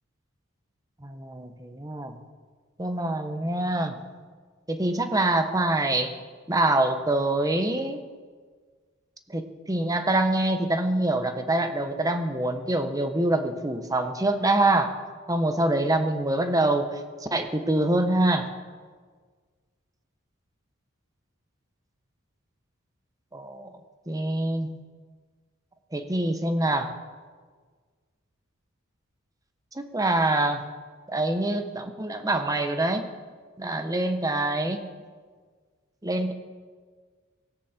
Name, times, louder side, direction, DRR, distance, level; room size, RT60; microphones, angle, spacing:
voice 1, 1.0-2.2 2.8-4.0 4.7-6.1 6.5-8.0 9.3-14.9 15.3-18.5 23.3-23.7 24.1-24.7 25.9-26.9 29.7-30.6 31.1-33.0 33.6-34.9 36.0-36.3, right 2 dB, 15° right, 7 dB, 1.1 m, -25 dB
17.5 x 17.0 x 4.4 m, 1.6 s
head